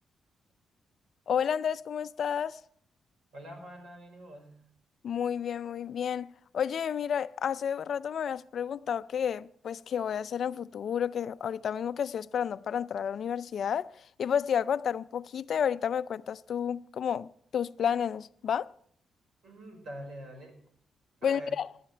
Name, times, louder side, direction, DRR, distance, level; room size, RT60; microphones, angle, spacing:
voice 1, 1.3-2.6 5.0-6.3 6.5-13.9 14.2-18.7 21.2-21.7, left 8 dB, 60° left, 0.4 m, -31 dB
voice 2, 3.3-4.6 19.4-20.6 21.2-21.6, equal, 60° right, 5.1 m, -44 dB
19.0 x 12.5 x 3.3 m
cardioid pair, 125°, 0 cm